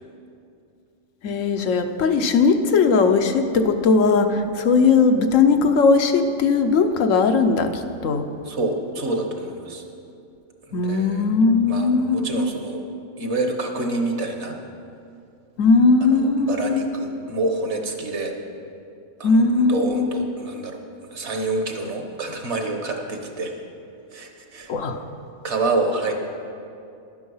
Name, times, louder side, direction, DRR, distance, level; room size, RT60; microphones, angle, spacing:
voice 1, 1.2-8.3 10.7-12.5 15.6-17.0 19.2-20.2 24.7-25.0, left 4 dB, 90° left, 7 dB, 1.1 m, -19 dB
voice 2, 8.4-9.8 10.7-11.3 11.7-12.8 13.2-14.6 16.0-18.3 19.2-20.8 21.1-23.5 24.1-24.7 25.4-26.1, right 2 dB, 65° right, 4 dB, 1.5 m, -27 dB
12.0 x 9.5 x 5.5 m, 2.6 s
omnidirectional pair, 1.3 m